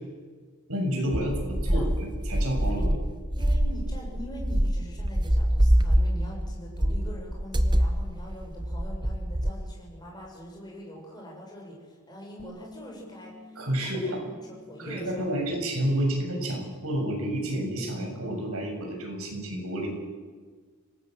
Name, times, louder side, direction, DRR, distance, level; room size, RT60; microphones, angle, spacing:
voice 1, 0.7-2.9 13.6-14.2 14.8-19.9, equal, 75° right, 1 dB, 7.2 m, -30 dB
sound 1, 1.1-9.5, equal, 20° right, 1.1 m, -25 dB
voice 2, 2.6-2.9 3.4-15.5, equal, 20° left, -2 dB, 7.2 m, -43 dB
Bass guitar, 12.4-16.7 17.0-18.6, left 2 dB, 50° right, 5.7 m, -53 dB
25.5 x 18.5 x 7.8 m, 1.5 s
head